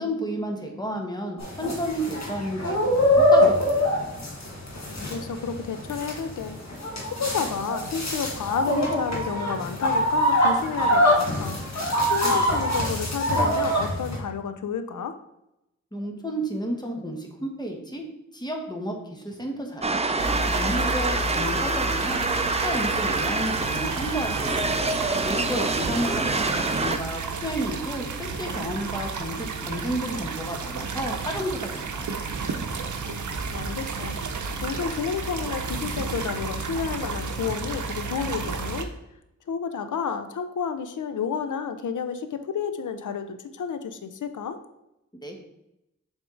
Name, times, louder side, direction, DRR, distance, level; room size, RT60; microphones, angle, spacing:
voice 1, 0.0-3.9 15.9-18.0 18.3-20.0 20.5-22.2 22.6-24.7 25.2-32.1 45.2-45.4, equal, 15° left, 2 dB, 1.3 m, -32 dB
sound 1, 1.4-14.2, equal, 65° left, 1.5 m, -24 dB
voice 2, 4.9-11.6 12.0-15.2 25.8-25.9 33.1-33.2 33.5-34.2 34.6-38.9 39.5-44.6, left 6 dB, 85° left, 9 dB, 0.6 m, -31 dB
sound 2, 19.8-27.0, right 3 dB, 20° right, 0.5 m, -26 dB
sound 3, 20.2-38.8, right 4 dB, 80° right, 0.7 m, -32 dB
6.9 x 3.6 x 3.8 m, 0.87 s
cardioid pair, 55°, 30 cm